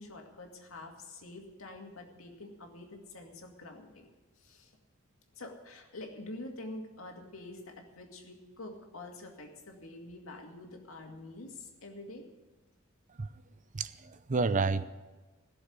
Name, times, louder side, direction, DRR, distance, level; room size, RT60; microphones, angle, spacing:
voice 1, 0.0-4.1 4.4-4.7 5.3-12.3, left 2 dB, 85° left, 2 dB, 2.3 m, -46 dB
voice 2, 13.7-14.8, right 4 dB, 40° right, 13 dB, 0.5 m, -30 dB
16.5 x 7.0 x 9.5 m, 1.2 s
head